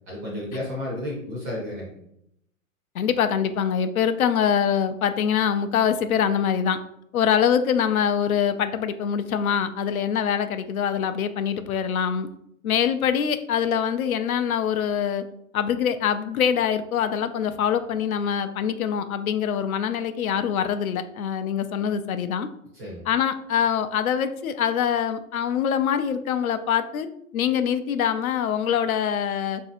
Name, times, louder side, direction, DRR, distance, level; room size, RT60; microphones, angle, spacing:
voice 1, 0.0-2.0 22.7-23.1, left 1 dB, 15° right, -5 dB, 0.4 m, -32 dB
voice 2, 2.9-6.8 7.1-12.3 12.6-15.2 15.5-22.5 23.1-27.1 27.3-29.6, left 8 dB, 80° left, 10 dB, 0.5 m, -24 dB
4.0 x 2.7 x 2.5 m, 0.76 s
hypercardioid pair, 135°, 42 cm